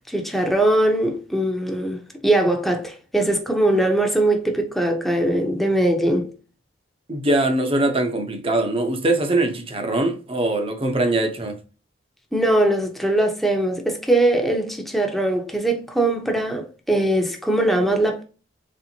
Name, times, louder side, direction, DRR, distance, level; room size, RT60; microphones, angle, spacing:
voice 1, 0.1-6.3 12.3-18.2, right 1 dB, ahead, 0.8 m, -21 dB
voice 2, 7.1-11.6, right 2 dB, 30° right, 0.8 m, -22 dB
4.4 x 3.3 x 2.7 m
head